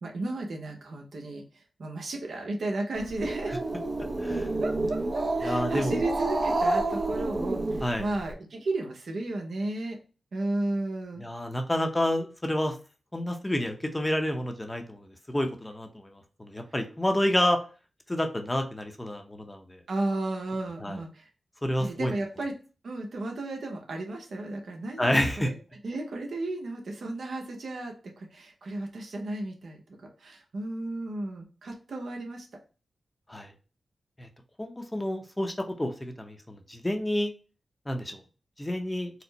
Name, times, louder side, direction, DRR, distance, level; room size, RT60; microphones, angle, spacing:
voice 1, 0.0-3.6 4.6-10.0 10.3-11.2 19.9-21.3 21.8-22.5 22.8-25.5 25.8-29.8 30.2-32.5, right 2 dB, 75° right, 1 dB, 0.9 m, -34 dB
Growling, 3.0-8.3, right 2 dB, 40° right, 0.6 m, -29 dB
voice 2, 5.4-6.0 7.8-8.1 11.2-12.7 13.1-17.6 18.1-19.8 20.8-21.0 21.6-22.1 25.0-25.5 33.3-33.5 34.2-34.3 34.6-37.3 37.9-38.2 38.6-39.1, left 1 dB, 15° left, 4 dB, 0.7 m, -29 dB
4.3 x 2.1 x 3.9 m, 0.35 s
cardioid pair, 70°, 0 cm